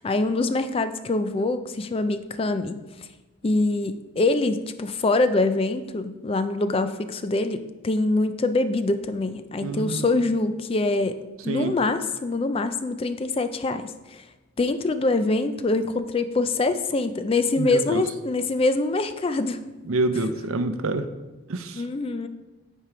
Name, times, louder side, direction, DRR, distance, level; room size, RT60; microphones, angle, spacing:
voice 1, 0.0-2.8 3.4-11.2 11.4-14.2 14.6-19.6 21.7-22.3, left 2 dB, 25° left, 10 dB, 0.3 m, -24 dB
voice 2, 9.6-10.1 11.5-11.7 17.6-18.0 19.9-21.1 21.5-21.8, right 2 dB, 85° right, 10 dB, 0.6 m, -27 dB
8.8 x 4.6 x 4.9 m, 1.1 s
head